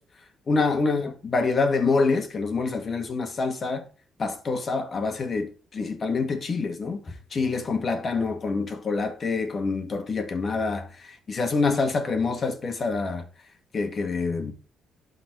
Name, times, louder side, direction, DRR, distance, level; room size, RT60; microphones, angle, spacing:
voice 1, 0.5-3.8 4.2-7.0 7.3-13.2 13.7-14.5, left 4 dB, 40° left, 1.8 m, -26 dB
11.5 x 4.1 x 3.2 m
cardioid pair, 90°, 0 cm